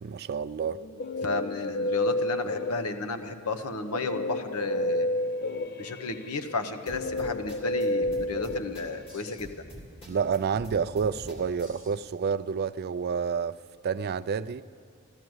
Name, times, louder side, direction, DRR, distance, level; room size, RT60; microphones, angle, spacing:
voice 1, 0.0-0.8 10.0-13.6 13.8-14.6, right 6 dB, 45° right, 0.3 m, -29 dB
Guitar, 0.6-3.2 3.9-9.3, left 1 dB, 45° left, 0.4 m, -31 dB
voice 2, 1.2-5.1 5.8-9.6, left 3 dB, 80° left, 1.0 m, -33 dB
sound 1, 6.9-11.9, equal, 25° left, 2.8 m, -45 dB
13.5 x 13.5 x 7.9 m
head